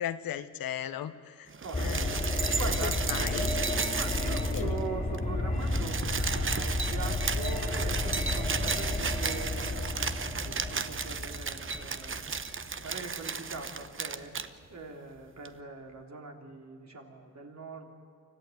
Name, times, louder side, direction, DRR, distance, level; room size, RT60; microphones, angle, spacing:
voice 1, 0.0-1.5 1.8-2.1 2.8-3.6 4.5-4.8, left 10 dB, 85° left, 12 dB, 1.0 m, -36 dB
sound 1, 1.5-4.9 5.1-5.2 5.5-14.5 15.5-15.6, right 5 dB, 35° right, 0.9 m, -34 dB
voice 2, 1.6-2.1 2.5-3.4 3.9-14.3 14.7-17.9, right 3 dB, 50° right, 2 dB, 3.4 m, -42 dB
sound 2, 1.7-13.6 13.9-14.0, left 2 dB, 20° left, 2.6 m, -32 dB
25.5 x 14.5 x 9.3 m, 2.5 s
cardioid pair, 75°, 34 cm